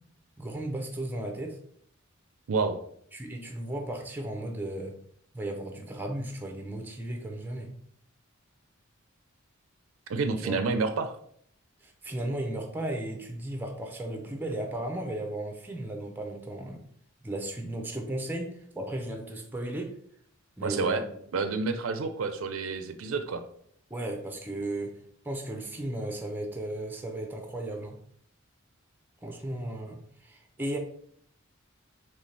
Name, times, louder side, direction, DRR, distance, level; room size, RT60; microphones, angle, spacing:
voice 1, 0.4-1.6 3.1-4.9 5.3-7.7 10.4-10.6 11.8-16.8 17.2-19.9 20.6-21.0 23.9-25.0 25.2-28.0 29.2-30.8, right 1 dB, 10° right, 3 dB, 0.6 m, -35 dB
voice 2, 2.5-2.8 10.1-11.2 20.6-21.0 21.3-23.4, right 4 dB, 75° right, 9 dB, 0.5 m, -29 dB
4.2 x 3.2 x 3.2 m, 0.64 s
head